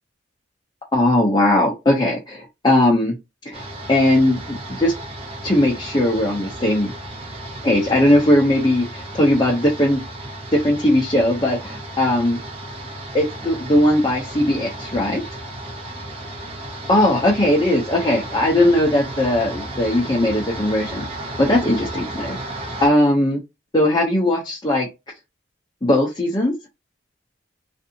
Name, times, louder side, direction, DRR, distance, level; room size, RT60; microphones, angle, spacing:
voice 1, 0.9-3.2 3.4-3.6 3.9-4.9 5.4-6.9 7.6-10.0 10.5-12.4 13.1-15.2 16.9-21.1 21.4-22.4 22.8-23.4 23.7-24.9 25.8-26.5, left 1 dB, 20° left, 0.7 m, -18 dB
sound 1, 3.5-22.9, right 1 dB, 30° right, 0.8 m, -34 dB
3.3 x 2.6 x 2.8 m
head